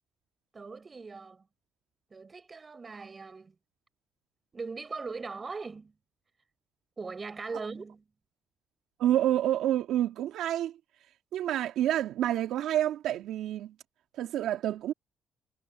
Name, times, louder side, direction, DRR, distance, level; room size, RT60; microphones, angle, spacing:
voice 1, 0.5-1.5 2.1-3.6 4.5-6.0 7.0-8.0, right 4 dB, 30° right, 7.9 m, -40 dB
voice 2, 9.0-10.7 11.3-13.7 14.1-14.9, right 12 dB, 85° right, 2.9 m, -28 dB
cardioid pair, 90°, 0 cm